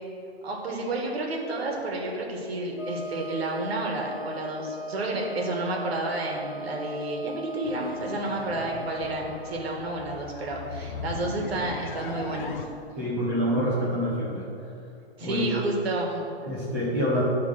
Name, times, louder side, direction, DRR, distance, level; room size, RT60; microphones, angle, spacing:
voice 1, 0.4-12.6 15.2-16.3, right 2 dB, 70° right, 0 dB, 1.7 m, -31 dB
Wind instrument woodwind instrument, 2.7-9.5, left 1 dB, 20° left, 0.9 m, -38 dB
sound 1, 7.6-12.6, left 5 dB, 50° left, 0.6 m, -39 dB
voice 2, 13.0-14.5 15.2-15.5 16.4-17.2, equal, 5° right, -8 dB, 0.5 m, -27 dB
9.4 x 3.7 x 6.4 m, 2.6 s
hypercardioid pair, 175°, 32 cm